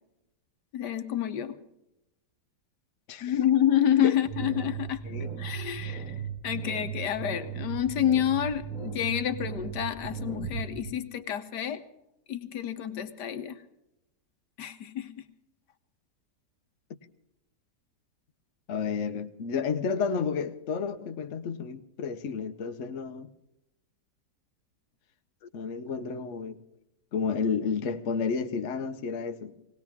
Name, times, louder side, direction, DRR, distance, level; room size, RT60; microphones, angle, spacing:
voice 1, 0.7-1.5 3.2-5.0 5.4-6.1 6.4-11.8 12.3-13.6 14.6-15.2, left 10 dB, 75° left, 1.5 m, -28 dB
sound 1, 4.3-10.8, right 7 dB, 25° right, 4.2 m, -37 dB
voice 2, 18.7-23.3 25.5-26.6 27.1-29.5, left 5 dB, 50° left, 1.1 m, -31 dB
20.0 x 18.0 x 3.6 m
omnidirectional pair, 1.8 m